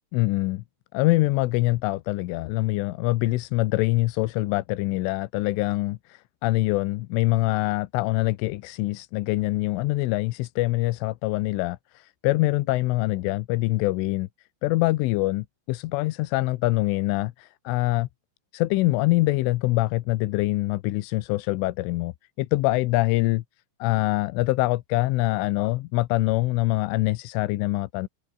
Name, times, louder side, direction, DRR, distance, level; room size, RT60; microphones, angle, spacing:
voice 1, 0.1-0.6 0.9-14.3 14.6-18.1 18.5-22.1 22.4-23.4 23.8-28.1, left 19 dB, 80° left, 3.3 m, -24 dB
omnidirectional pair, 5.8 m